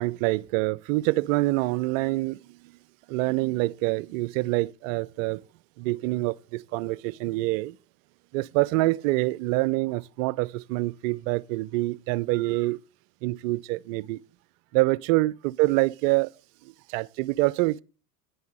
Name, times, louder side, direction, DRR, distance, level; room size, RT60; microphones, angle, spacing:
voice 1, 0.0-2.4 3.1-5.4 5.8-7.8 8.3-12.8 13.2-14.2 14.7-16.3 16.6-17.8, right 20 dB, 55° right, 0.5 m, -26 dB
10.0 x 5.7 x 7.6 m
hypercardioid pair, 90°, 49 cm